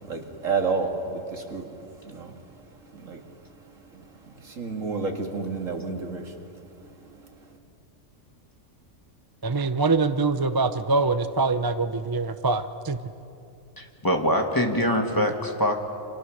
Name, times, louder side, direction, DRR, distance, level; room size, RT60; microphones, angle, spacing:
voice 1, 0.0-3.4 3.7-6.6 7.0-7.6, right 4 dB, 80° right, 3 dB, 2.7 m, -32 dB
voice 2, 9.4-13.0, right 3 dB, 25° right, 10 dB, 0.5 m, -24 dB
voice 3, 13.8-15.8, equal, 15° left, 2 dB, 2.2 m, -24 dB
30.0 x 26.5 x 6.6 m, 2.7 s
omnidirectional pair, 1.3 m